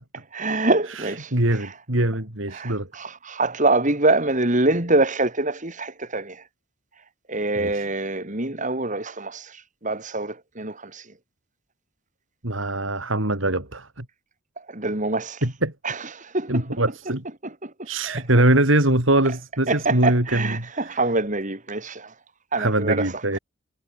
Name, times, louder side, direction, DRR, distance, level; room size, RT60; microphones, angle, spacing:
voice 1, 0.1-1.7 2.5-6.4 7.3-11.1 14.6-15.4 15.8-16.8 17.4-18.2 19.7-22.1 22.5-23.2, right 2 dB, 40° right, 4.1 m, -25 dB
voice 2, 1.0-2.9 7.6-7.8 12.4-14.0 15.4-15.7 16.5-17.2 17.8-20.6 22.6-23.4, right 1 dB, 70° right, 4.7 m, -22 dB
head